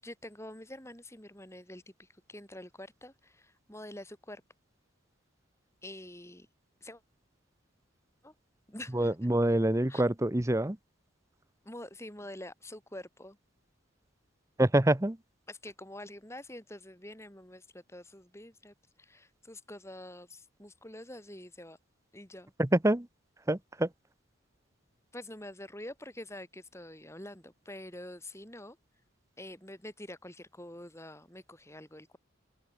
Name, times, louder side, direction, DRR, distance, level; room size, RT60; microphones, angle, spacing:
voice 1, 0.0-4.4 5.8-6.5 6.8-7.0 8.2-8.3 8.7-9.1 9.9-10.0 11.6-13.4 15.5-21.8 22.1-22.5 25.1-28.8 29.4-32.2, left 1 dB, 15° left, 6.5 m, -46 dB
voice 2, 8.9-10.8 14.6-15.2 22.6-23.1 23.4-23.9, right 1 dB, 15° right, 0.8 m, -26 dB
head